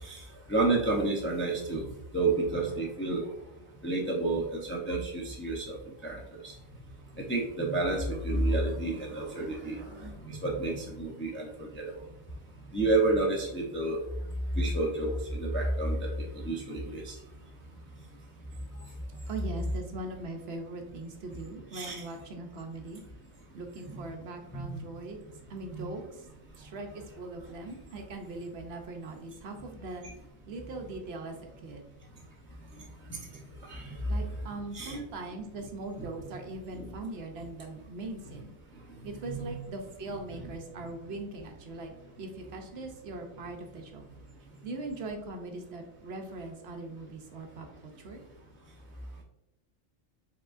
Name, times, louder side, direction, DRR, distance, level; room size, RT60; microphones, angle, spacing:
voice 1, 0.0-1.9 2.1-3.3 3.8-6.6 7.1-11.9 12.7-14.0 14.5-17.2 21.7-22.0 23.9-24.0 24.5-24.7 25.7-25.9 32.7-32.8 33.1-33.2 33.7-34.0 34.7-35.0 36.7-36.9 39.3-39.5, right 2 dB, 15° left, -3 dB, 0.4 m, -30 dB
voice 2, 19.3-23.0 23.5-25.2 25.5-26.3 26.5-30.1 30.5-31.8 34.1-38.5 39.0-41.9 42.2-44.1 44.6-48.2, right 2 dB, 65° right, 3 dB, 0.8 m, -40 dB
4.8 x 3.6 x 2.4 m, 0.85 s
omnidirectional pair, 1.3 m